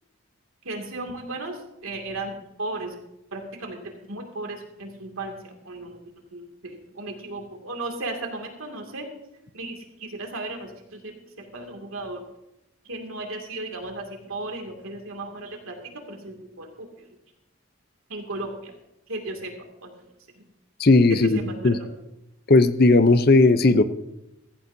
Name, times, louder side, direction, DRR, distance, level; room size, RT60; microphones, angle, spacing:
voice 1, 0.6-2.9 3.3-3.8 4.1-6.0 6.3-9.1 9.5-12.2 12.9-16.7 18.1-18.7 19.1-19.5 19.8-19.9 21.3-21.9, right 2 dB, 90° right, 2 dB, 2.4 m, -35 dB
voice 2, 20.8-21.8 22.5-23.8, left 2 dB, 45° left, 12 dB, 0.6 m, -17 dB
15.5 x 15.0 x 2.7 m, 0.88 s
head